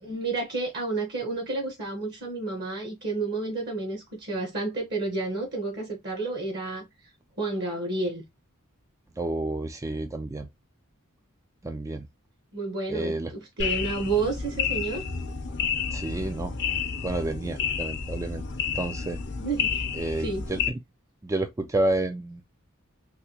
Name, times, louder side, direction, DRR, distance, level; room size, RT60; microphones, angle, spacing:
voice 1, 0.0-6.9 7.4-8.2 12.5-15.0 19.4-19.8 20.2-20.4, right 3 dB, 50° right, 1.1 m, -30 dB
voice 2, 9.2-10.5 11.6-12.1 12.9-13.3 15.9-16.5 17.0-18.4 18.7-19.2 20.0-20.6 21.2-22.4, right 2 dB, 15° right, 0.3 m, -30 dB
sound 1, 13.6-20.7, left 6 dB, 55° left, 0.7 m, -30 dB
3.4 x 2.7 x 2.8 m
head